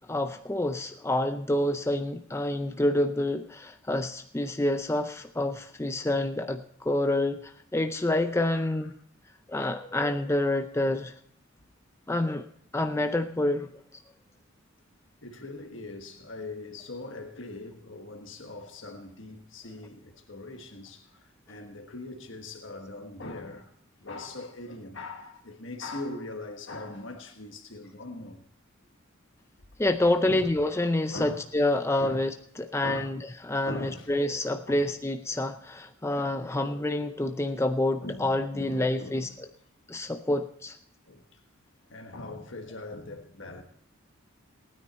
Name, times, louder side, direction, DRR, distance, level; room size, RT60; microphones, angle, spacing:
voice 1, 0.1-8.9 9.5-11.1 12.1-12.5 12.7-13.7 29.8-39.3 39.9-40.8, left 1 dB, 15° left, 0.5 m, -28 dB
voice 2, 8.5-8.9 15.2-23.7 24.0-28.4 30.2-30.5 31.1-31.4 32.0-32.2 32.8-33.1 33.6-34.1 34.7-34.9 38.0-39.4 39.9-40.0 41.1-41.4 41.9-43.6, left 2 dB, 65° left, 1.4 m, -41 dB
18.5 x 9.6 x 4.2 m
head